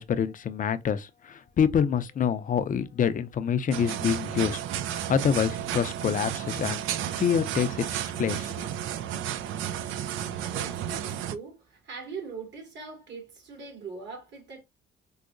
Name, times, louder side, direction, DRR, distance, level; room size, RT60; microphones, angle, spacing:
voice 1, 0.0-4.6 5.1-8.7, left 7 dB, 40° left, 0.5 m, -27 dB
sound 1, 3.7-11.3, right 10 dB, 85° right, 0.4 m, -32 dB
voice 2, 10.5-14.6, right 5 dB, 60° right, 2.1 m, -41 dB
4.6 x 2.0 x 2.5 m
cardioid pair, 90°, 20 cm